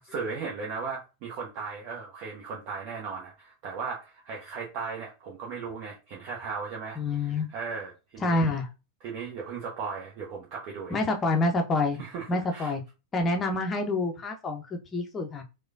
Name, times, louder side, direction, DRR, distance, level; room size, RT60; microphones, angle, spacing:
voice 1, 0.0-8.4 9.0-11.0 12.0-12.3 12.5-12.7, right 5 dB, 45° right, -1 dB, 0.8 m, -37 dB
voice 2, 7.0-7.5 8.2-8.7 10.9-12.0 12.3-12.8 13.1-15.4, left 2 dB, 20° left, 3 dB, 0.6 m, -27 dB
4.7 x 2.2 x 2.5 m, 0.28 s
figure-of-eight pair, 90°, 0 cm